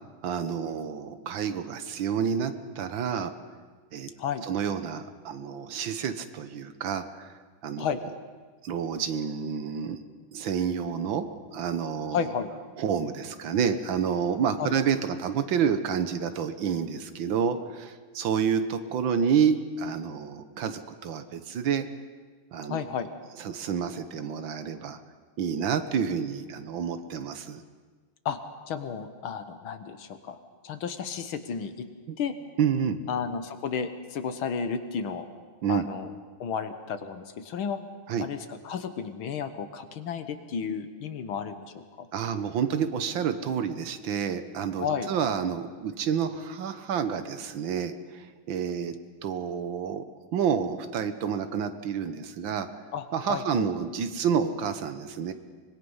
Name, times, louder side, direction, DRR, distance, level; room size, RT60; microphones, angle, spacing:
voice 1, 0.2-3.3 3.9-4.1 4.5-7.3 7.6-7.9 8.6-10.0 10.3-11.3 11.5-12.3 12.8-21.9 22.5-22.9 23.4-25.0 25.4-27.6 32.1-32.2 32.6-33.0 35.6-35.9 38.1-38.3 42.1-48.9 49.2-50.0 50.3-52.7 53.1-55.3, right 7 dB, 70° right, 10 dB, 1.8 m, -29 dB
voice 2, 12.1-12.5 14.6-14.8 22.7-23.1 28.3-28.4 28.7-30.4 30.6-31.9 32.2-32.4 33.1-35.3 35.7-36.1 36.4-37.8 38.2-42.1 44.8-45.1 52.9-53.7, left 7 dB, 85° left, 9 dB, 2.1 m, -32 dB
24.5 x 21.0 x 5.6 m, 1.5 s
omnidirectional pair, 2.2 m